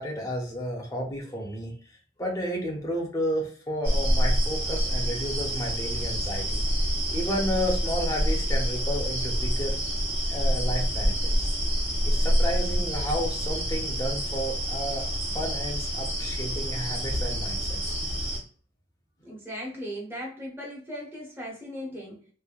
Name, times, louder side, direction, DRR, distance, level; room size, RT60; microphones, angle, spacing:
voice 1, 0.0-1.7 2.2-6.6 7.1-9.8 10.3-11.6 12.0-18.0, equal, 20° left, -1 dB, 0.7 m, -32 dB
sound 1, 3.8-18.4, equal, 35° right, 1.4 m, -27 dB
voice 2, 19.2-22.3, equal, 10° right, -3 dB, 0.9 m, -37 dB
3.2 x 2.1 x 2.4 m, 0.42 s
head